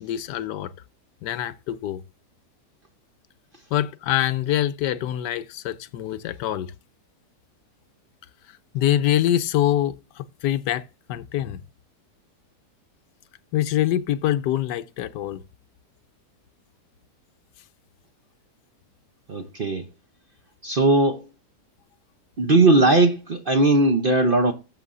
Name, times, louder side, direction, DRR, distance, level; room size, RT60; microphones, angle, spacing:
voice 1, 0.0-0.7 1.2-2.0 3.7-6.7 8.7-11.6 13.5-15.4, left 12 dB, 80° left, 1.2 m, -25 dB
voice 2, 19.3-19.8 20.6-21.3 22.4-24.5, right 2 dB, 45° right, 0.7 m, -18 dB
13.0 x 7.3 x 2.6 m
omnidirectional pair, 1.8 m